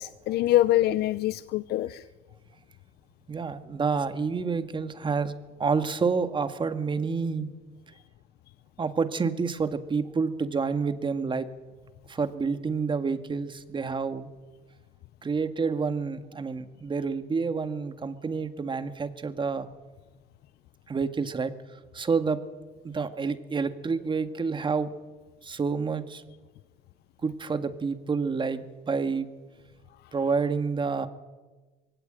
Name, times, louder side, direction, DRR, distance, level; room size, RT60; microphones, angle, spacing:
voice 1, 0.0-2.0, left 14 dB, 70° left, 16 dB, 0.6 m, -24 dB
voice 2, 3.3-5.3 5.6-7.5 8.8-11.5 12.1-14.3 15.2-19.7 20.9-21.5 21.9-22.4 22.8-24.9 25.4-26.2 27.2-29.3 30.1-31.1, right 5 dB, 30° right, 10 dB, 1.8 m, -28 dB
22.5 x 17.0 x 9.0 m, 1.3 s
cardioid pair, 110°, 17 cm